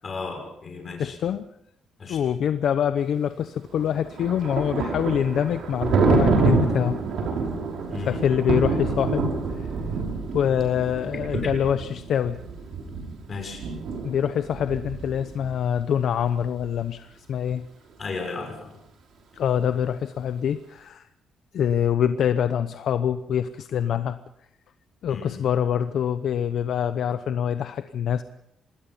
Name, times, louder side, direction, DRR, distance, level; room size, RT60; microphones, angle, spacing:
voice 1, 0.0-1.2 2.0-2.2 7.9-8.3 11.3-11.5 13.3-13.6 18.0-18.8 25.1-25.4, left 4 dB, 30° left, 3 dB, 6.7 m, -34 dB
voice 2, 1.0-1.4 2.1-7.0 8.1-9.3 9.6-9.7 10.3-12.4 14.0-17.7 19.3-21.0 21.5-24.2 25.0-28.2, left 9 dB, 55° left, 10 dB, 0.9 m, -25 dB
Thunder, 3.7-15.5, right 4 dB, 60° right, 5.6 m, -27 dB
26.5 x 20.0 x 5.7 m, 0.74 s
cardioid pair, 165°, 0 cm